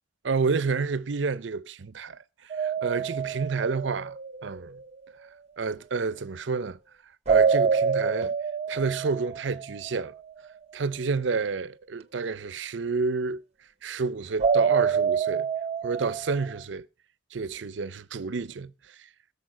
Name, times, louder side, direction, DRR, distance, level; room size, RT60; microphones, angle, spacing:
voice 1, 0.2-4.2 4.4-4.8 5.6-6.8 7.3-8.3 8.7-10.1 10.7-13.4 13.8-15.5 15.8-16.9 17.3-18.7, right 4 dB, 75° right, 0.6 m, -29 dB
sound 1, 2.5-4.6 7.3-10.1 14.4-16.6, right 6 dB, 35° right, 0.9 m, -26 dB
20.5 x 6.9 x 4.9 m
head